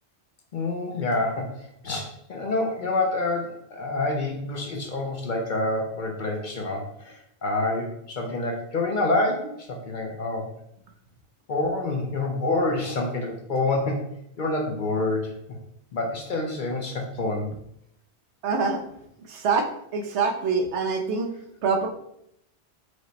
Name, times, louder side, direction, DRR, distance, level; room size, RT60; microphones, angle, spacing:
voice 1, 0.5-10.5 11.5-14.1 14.4-15.3 15.9-17.5, left 2 dB, 50° left, 2 dB, 0.7 m, -27 dB
voice 2, 18.4-18.8 19.3-21.3 21.6-21.9, right 4 dB, 80° right, 3 dB, 0.9 m, -25 dB
4.9 x 2.1 x 3.9 m, 0.75 s
omnidirectional pair, 1.1 m